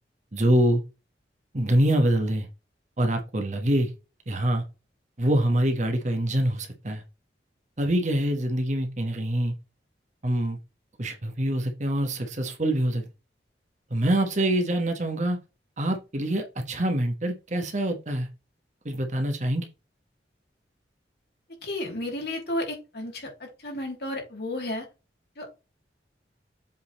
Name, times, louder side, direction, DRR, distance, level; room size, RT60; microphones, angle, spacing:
voice 1, 0.3-0.8 1.5-2.5 3.0-3.9 4.3-4.6 5.2-7.0 7.8-9.5 10.2-10.6 11.0-13.1 13.9-15.4 15.8-18.3 18.8-19.7, right 1 dB, 40° right, 5 dB, 1.3 m, -25 dB
voice 2, 21.6-24.9 25.4-25.5, left 1 dB, 60° left, 0 dB, 3.3 m, -32 dB
7.6 x 3.9 x 4.2 m, 0.28 s
head